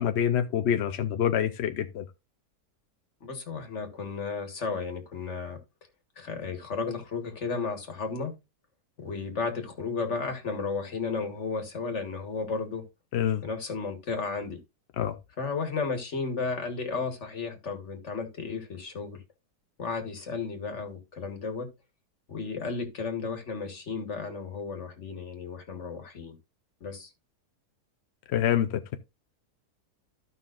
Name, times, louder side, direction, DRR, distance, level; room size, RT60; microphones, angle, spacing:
voice 1, 0.0-2.0 13.1-13.4 15.0-15.2 28.3-29.0, left 9 dB, 60° left, 0.7 m, -26 dB
voice 2, 3.2-5.6 6.2-8.3 9.0-12.8 13.4-14.6 15.4-19.2 19.8-21.7 22.3-26.4 26.8-27.1, left 4 dB, 45° left, 1.8 m, -33 dB
14.5 x 5.4 x 2.5 m
omnidirectional pair, 1.7 m